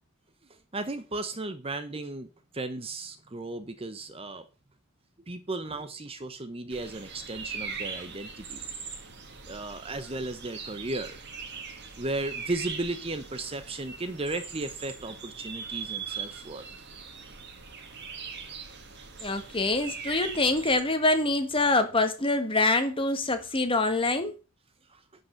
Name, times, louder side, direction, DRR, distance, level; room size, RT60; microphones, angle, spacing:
voice 1, 0.5-2.3 2.5-4.5 5.3-8.6 9.5-11.2 12.0-16.6 24.9-25.0, right 2 dB, 25° right, 0.8 m, -35 dB
sound 1, 6.7-20.8, right 6 dB, 50° right, 2.1 m, -40 dB
voice 2, 19.2-24.3, left 2 dB, 25° left, 1.6 m, -25 dB
11.0 x 5.5 x 6.5 m
head